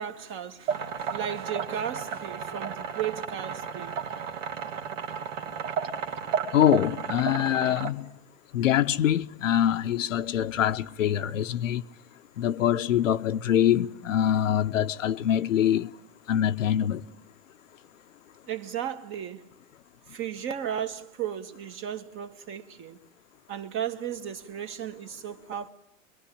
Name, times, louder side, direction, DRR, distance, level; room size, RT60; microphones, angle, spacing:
voice 1, 0.0-3.9 18.5-19.5 20.1-23.0 23.5-25.7, right 9 dB, 30° right, 1.8 m, -35 dB
sound 1, 0.7-7.9, right 7 dB, 85° right, 2.4 m, -33 dB
voice 2, 6.5-8.1 8.5-11.8 12.4-15.9 16.3-17.1, left 10 dB, 90° left, 1.1 m, -24 dB
25.5 x 22.5 x 8.5 m
hypercardioid pair, 130°, 37 cm